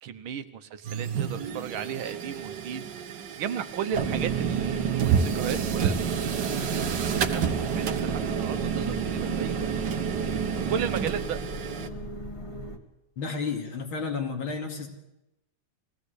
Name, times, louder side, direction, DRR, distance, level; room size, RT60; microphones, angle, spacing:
voice 1, 0.0-6.1 6.5-9.7 10.7-11.4, right 8 dB, 90° right, 10 dB, 1.9 m, -35 dB
sound 1, 0.8-11.9, right 7 dB, 60° right, 1.7 m, -29 dB
sound 2, 3.9-12.8, right 1 dB, 15° left, 1.7 m, -38 dB
voice 2, 13.2-14.9, left 5 dB, 85° left, 3 dB, 3.5 m, -31 dB
22.0 x 16.5 x 8.2 m, 0.91 s
omnidirectional pair, 2.2 m